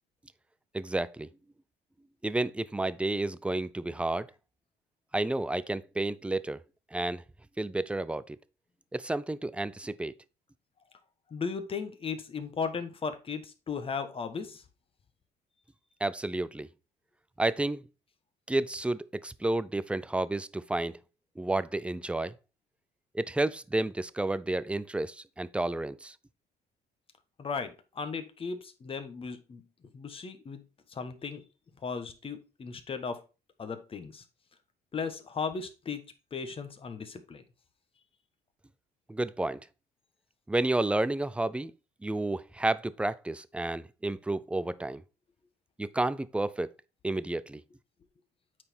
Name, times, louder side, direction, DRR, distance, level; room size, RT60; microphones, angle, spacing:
voice 1, 0.7-1.3 2.2-4.3 5.1-6.6 6.9-7.2 7.6-8.4 8.9-10.1 16.0-16.7 17.4-17.8 18.5-21.0 21.4-22.3 23.1-26.1 39.1-39.6 40.5-41.7 42.0-45.0 45.8-46.7 47.0-47.6, right 2 dB, 5° right, 0.4 m, -31 dB
voice 2, 11.3-14.6 27.4-29.6 29.9-30.6 30.9-31.4 31.8-33.2 33.6-34.2 34.9-36.0 36.3-37.4, left 5 dB, 35° left, 1.3 m, -36 dB
8.7 x 4.2 x 4.5 m
cardioid pair, 110°, 17 cm